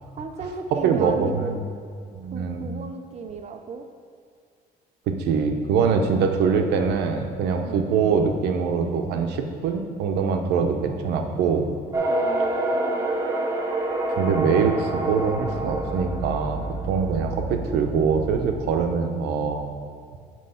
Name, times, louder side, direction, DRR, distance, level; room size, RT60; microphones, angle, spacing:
voice 1, 0.2-1.6 2.3-3.9 7.6-7.9 12.1-13.1, right 4 dB, 40° right, 6 dB, 0.5 m, -35 dB
voice 2, 0.7-1.6 2.1-2.6 5.1-11.7 14.2-19.7, right 5 dB, 80° right, 5 dB, 0.7 m, -23 dB
sound 1, 11.9-18.6, right 2 dB, 15° right, 0.9 m, -27 dB
9.1 x 3.1 x 5.6 m, 2.3 s
cardioid pair, 110°, 17 cm